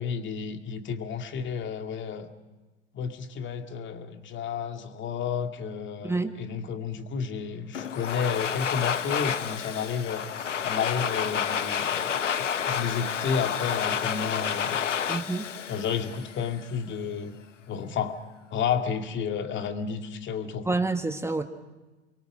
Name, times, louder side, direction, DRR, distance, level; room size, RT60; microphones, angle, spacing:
voice 1, 0.0-2.3 2.9-10.2 10.6-12.0 12.7-14.8 15.7-17.3 17.7-18.2 18.5-20.8, left 6 dB, 30° left, 6 dB, 2.3 m, -31 dB
Domestic sounds home sounds, 7.7-16.7, left 8 dB, 85° left, 0.9 m, -30 dB
voice 2, 15.1-15.5 20.6-21.4, right 3 dB, 5° right, 7 dB, 1.3 m, -27 dB
29.0 x 22.5 x 6.3 m, 1.2 s
figure-of-eight pair, 90°, 36 cm